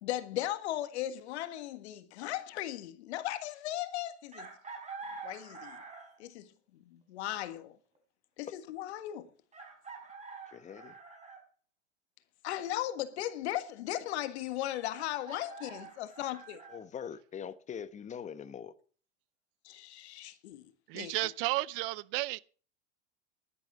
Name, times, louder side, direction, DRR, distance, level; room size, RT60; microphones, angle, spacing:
voice 1, 0.0-4.5 5.2-5.8 6.2-7.8 8.4-9.3 12.4-16.6 19.6-21.1, left 13 dB, 65° left, 1.7 m, -37 dB
Chicken rooster, 4.3-6.3 7.9-8.0 9.5-11.4 14.9-16.8, right 4 dB, 20° right, 4.8 m, -47 dB
voice 2, 10.5-10.9 16.7-18.7, left 7 dB, 20° left, 1.1 m, -42 dB
voice 3, 20.9-22.4, right 20 dB, 50° right, 0.6 m, -33 dB
11.5 x 10.0 x 6.2 m
hypercardioid pair, 105°, 36 cm